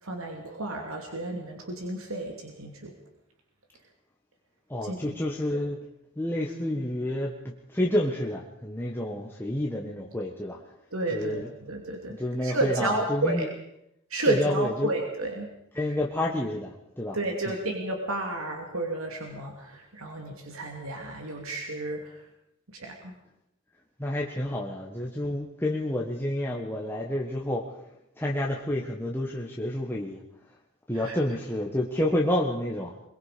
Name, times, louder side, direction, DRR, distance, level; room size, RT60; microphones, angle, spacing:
voice 1, 0.0-2.9 4.8-5.2 10.9-12.1 12.4-13.5 14.1-15.5 15.7-15.8 17.1-22.2 22.7-23.1 30.9-31.2, right 2 dB, 85° right, 2 dB, 2.7 m, -32 dB
voice 2, 4.7-5.8 6.2-10.6 11.1-11.5 12.1-13.5 14.1-14.9 15.7-17.2 17.4-17.6 24.0-27.6 28.2-30.2 30.9-33.0, left 1 dB, 10° left, -2 dB, 1.5 m, -29 dB
22.5 x 22.5 x 5.1 m, 0.81 s
head